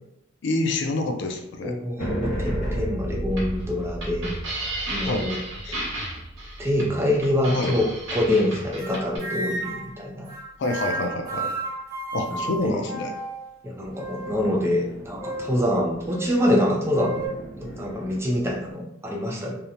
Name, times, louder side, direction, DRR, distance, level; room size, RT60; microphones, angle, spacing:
voice 1, 0.4-1.8 5.0-5.3 5.6-5.8 7.5-7.7 10.6-11.5 12.1-13.1, left 2 dB, 65° left, 5 dB, 0.4 m, -27 dB
voice 2, 1.6-4.3 4.9-5.4 5.7-5.9 6.6-10.3 12.3-12.9 13.6-19.6, left 1 dB, 15° right, -1 dB, 0.4 m, -25 dB
sound 1, 2.0-8.5 13.8-18.7, equal, 45° left, 0.9 m, -35 dB
sound 2, 3.3-9.2, right 1 dB, 70° right, 1.0 m, -34 dB
sound 3, 8.8-9.9 10.3-13.5 13.9-14.5 15.2-15.6 16.1-16.3 16.9-17.3, right 2 dB, 50° right, 0.8 m, -33 dB
2.8 x 2.1 x 2.4 m, 0.80 s
head